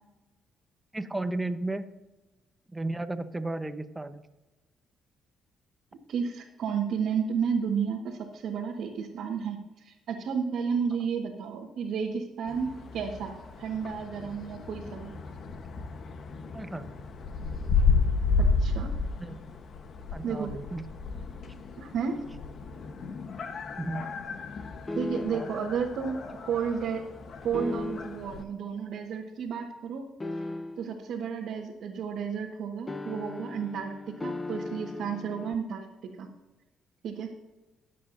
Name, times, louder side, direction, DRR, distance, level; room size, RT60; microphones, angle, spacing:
voice 1, 0.9-1.8 2.7-4.2 16.5-16.9 19.2-19.4 20.1-20.8 23.8-24.1 25.3-25.5, right 2 dB, 15° right, 9 dB, 1.0 m, -34 dB
voice 2, 6.1-15.1 18.4-18.9 20.2-20.5 21.8-22.2 24.9-27.0 27.4-30.1 30.4-30.5 30.8-35.9 36.2-36.3 37.0-37.3, right 6 dB, 75° right, -1 dB, 1.4 m, -32 dB
sound 1, 12.5-28.4, left 4 dB, 55° left, 1.1 m, -32 dB
sound 2, 24.9-25.7 27.5-28.3 30.2-31.0 32.9-35.6, left 2 dB, 20° left, 0.7 m, -37 dB
21.0 x 7.6 x 2.7 m, 1.1 s
cardioid pair, 90°, 0 cm